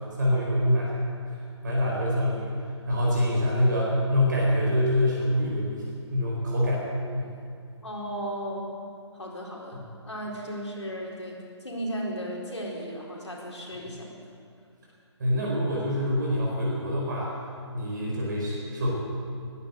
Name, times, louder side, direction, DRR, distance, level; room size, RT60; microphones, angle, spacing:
voice 1, 0.1-0.9 1.3-1.4 1.6-2.5 2.9-5.8 6.1-6.8 7.1-7.3 9.7-9.8 15.2-17.3 17.7-18.9, left 1 dB, 40° right, -5 dB, 5.0 m, -25 dB
voice 2, 7.8-8.8 9.1-9.8 10.1-14.1, equal, 75° left, -2 dB, 4.3 m, -35 dB
15.0 x 11.5 x 8.1 m, 2.3 s
figure-of-eight pair, 140°, 15 cm